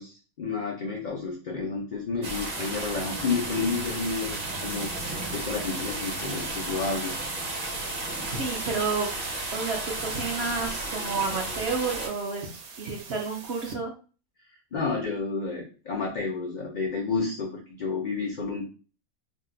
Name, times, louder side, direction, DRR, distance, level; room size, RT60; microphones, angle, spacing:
voice 1, 0.0-4.9 5.3-7.1 14.7-18.7, left 4 dB, 80° left, 0 dB, 0.4 m, -30 dB
sound 1, 2.2-12.1, right 2 dB, 40° right, 1.0 m, -33 dB
sound 2, 3.7-13.7, right 5 dB, 85° right, 1.1 m, -46 dB
voice 2, 8.3-9.1 9.5-13.9, right 4 dB, 60° right, 1 dB, 0.7 m, -30 dB
2.7 x 2.1 x 3.7 m, 0.37 s
omnidirectional pair, 1.5 m